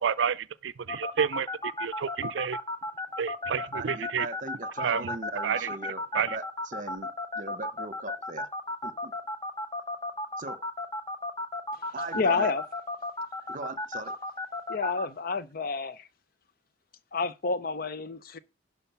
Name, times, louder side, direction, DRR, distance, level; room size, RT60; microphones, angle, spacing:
voice 1, 0.0-2.6 3.2-4.3 4.8-5.1 5.4-5.7 6.1-6.4, right 7 dB, 70° right, 0.4 m, -30 dB
sound 1, 0.9-15.0, left 2 dB, 20° left, 1.2 m, -33 dB
voice 2, 3.5-8.5 8.8-9.1 10.4-10.6 11.9-12.5 13.5-14.1, right 3 dB, 45° right, 1.0 m, -39 dB
voice 3, 12.1-12.6 14.7-16.1 17.1-18.4, left 4 dB, 50° left, 0.6 m, -29 dB
11.0 x 4.7 x 5.7 m
head